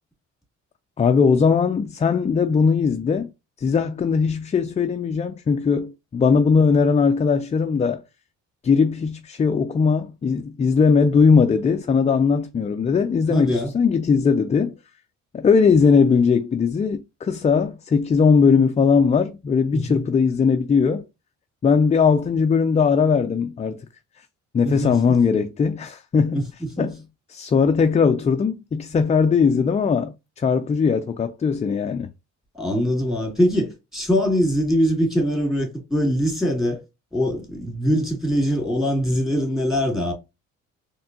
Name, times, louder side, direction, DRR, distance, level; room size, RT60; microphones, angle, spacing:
voice 1, 1.0-3.3 3.6-8.0 8.6-14.7 15.3-21.0 21.6-23.8 24.5-26.5 26.8-27.0 27.3-32.1, left 5 dB, 25° left, 0.3 m, -19 dB
voice 2, 13.3-13.7 19.7-20.0 24.6-25.0 26.3-26.4 26.8-26.9 32.5-36.8 37.1-40.1, equal, ahead, 2.2 m, -22 dB
4.2 x 3.3 x 2.7 m
cardioid pair, 90°, 30 cm